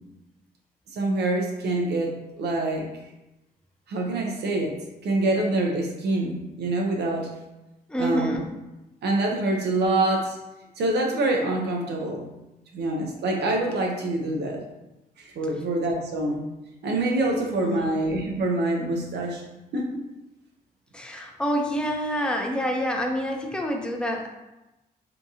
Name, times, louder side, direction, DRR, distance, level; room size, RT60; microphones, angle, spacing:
voice 1, 0.9-2.9 3.9-7.3 8.0-8.4 9.0-10.4 10.8-12.3 12.7-14.6 15.2-16.4 16.8-19.4 19.7-20.0, right 2 dB, 80° right, 1 dB, 0.5 m, -26 dB
voice 2, 7.9-8.4 17.6-17.9 20.9-24.3, equal, 5° left, 1 dB, 0.5 m, -27 dB
2.8 x 2.3 x 2.7 m, 0.99 s
cardioid pair, 80°, 17 cm